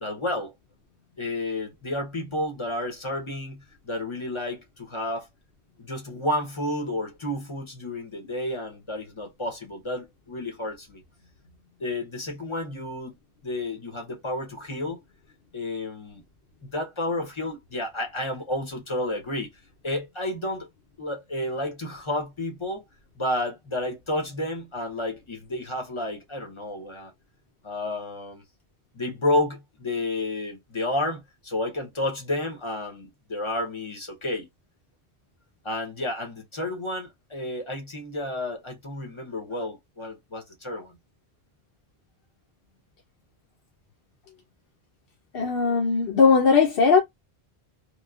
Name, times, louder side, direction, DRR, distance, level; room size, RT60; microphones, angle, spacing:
voice 1, 0.0-0.5 1.2-5.3 5.8-11.0 11.8-13.2 13.4-15.0 15.5-16.2 16.6-19.5 19.8-20.7 21.0-22.8 23.2-27.1 27.6-28.4 28.9-34.5 35.6-41.0, left 1 dB, 30° left, 0.8 m, -31 dB
voice 2, 45.3-47.0, left 5 dB, 60° left, 0.9 m, -19 dB
3.0 x 2.2 x 2.3 m
omnidirectional pair, 1.1 m